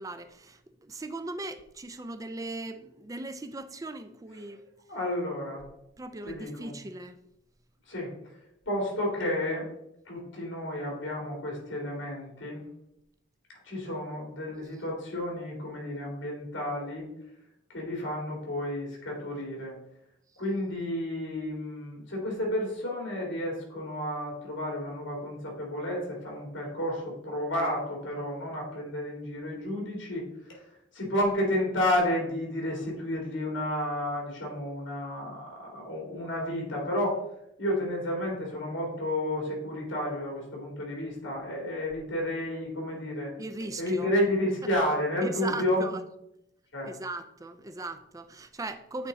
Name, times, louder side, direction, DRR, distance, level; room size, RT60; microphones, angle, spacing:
voice 1, 0.0-4.6 6.0-7.2 43.4-44.1 45.2-46.0 46.8-49.1, right 2 dB, 15° right, 0.4 m, -38 dB
voice 2, 4.9-5.6 6.2-6.7 7.9-8.1 8.7-9.7 10.1-12.6 13.6-17.1 17.7-19.7 20.4-30.2 30.5-30.6 30.9-37.2 37.6-43.3 43.8-45.9 46.7-46.9, left 1 dB, 70° left, 2.6 m, -31 dB
8.1 x 3.6 x 4.0 m
head